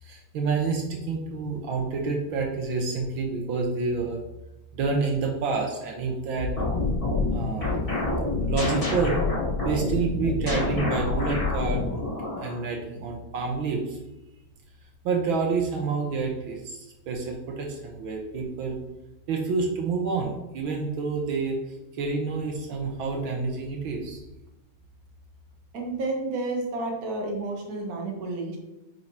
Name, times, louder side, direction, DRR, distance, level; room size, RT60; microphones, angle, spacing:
voice 1, 0.0-4.2 4.7-6.5 7.3-7.8 8.4-9.2 9.6-12.0 12.4-14.0 15.1-18.8 19.3-21.6 22.0-24.2, right 4 dB, 80° right, 1 dB, 1.7 m, -28 dB
sound 1, 6.4-12.6, left 3 dB, 30° left, 2.1 m, -27 dB
voice 2, 25.7-28.6, right 2 dB, 50° right, 0 dB, 1.6 m, -30 dB
9.2 x 4.7 x 2.8 m, 0.95 s
omnidirectional pair, 2.2 m